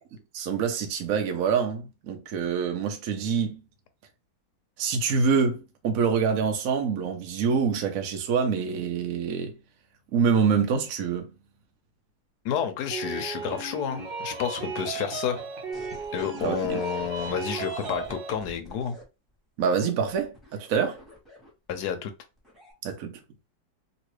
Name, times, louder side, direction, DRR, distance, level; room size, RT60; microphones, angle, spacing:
voice 1, 0.3-3.6 4.8-9.6 10.1-11.3 16.4-16.8 19.6-21.0 22.8-23.2, right 6 dB, 60° right, 0.9 m, -26 dB
voice 2, 12.4-15.4 16.1-19.0 21.7-22.1, left 8 dB, 70° left, 1.0 m, -30 dB
sound 1, 12.9-18.4, right 4 dB, 75° right, 1.7 m, -35 dB
sound 2, 15.7-19.0 20.1-21.7 22.4-22.7, left 1 dB, ahead, 1.2 m, -47 dB
3.0 x 2.8 x 3.1 m
omnidirectional pair, 2.0 m